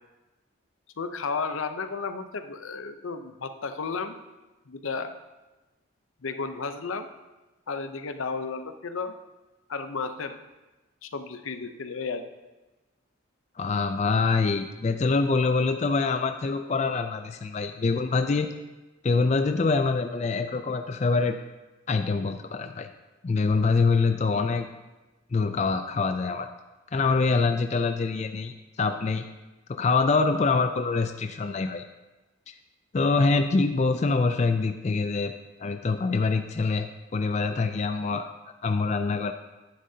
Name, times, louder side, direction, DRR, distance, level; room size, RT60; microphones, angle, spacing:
voice 1, 1.0-4.2 4.7-5.1 6.2-7.1 7.7-9.1 9.7-10.4 11.0-12.3, left 4 dB, 80° left, 9 dB, 0.7 m, -33 dB
voice 2, 13.6-18.5 19.0-21.4 21.9-22.9 23.2-24.7 25.3-26.5 26.9-28.5 28.8-29.3 29.7-31.8 32.5-32.6 32.9-35.3 35.6-38.3 38.6-39.3, left 4 dB, 35° left, 8 dB, 0.3 m, -25 dB
11.0 x 9.9 x 2.8 m, 1.1 s
head